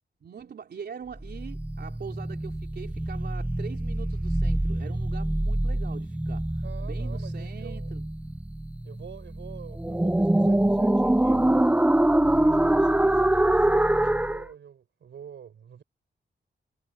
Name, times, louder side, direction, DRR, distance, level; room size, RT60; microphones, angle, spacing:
voice 1, 0.2-8.0 14.0-14.2, right 6 dB, 65° right, 4.0 m, -43 dB
sound 1, 1.2-14.4, right 1 dB, 5° right, 0.8 m, -25 dB
voice 2, 6.6-8.0 8.8-11.7 12.3-15.8, right 8 dB, 80° right, 7.1 m, -46 dB
wide cardioid pair, 145°, 19 cm